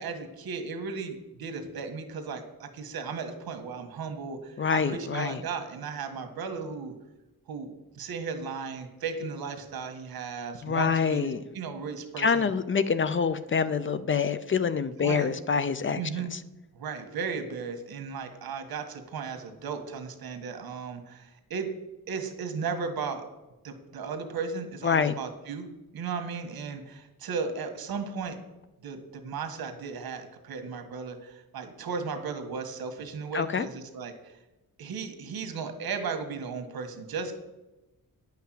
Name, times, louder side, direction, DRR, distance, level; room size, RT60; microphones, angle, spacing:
voice 1, 0.0-6.9 7.5-12.5 15.0-15.3 15.9-16.3 16.7-21.7 22.1-23.3 23.6-25.7 25.9-28.4 28.8-34.3 34.8-37.4, right 5 dB, 80° right, 7 dB, 1.7 m, -35 dB
voice 2, 4.6-5.4 10.6-11.4 12.2-16.0 16.3-16.4 24.8-25.1 33.3-33.7, left 6 dB, 35° left, 14 dB, 0.5 m, -26 dB
10.0 x 5.8 x 7.7 m, 1.0 s
wide cardioid pair, 125°, 36 cm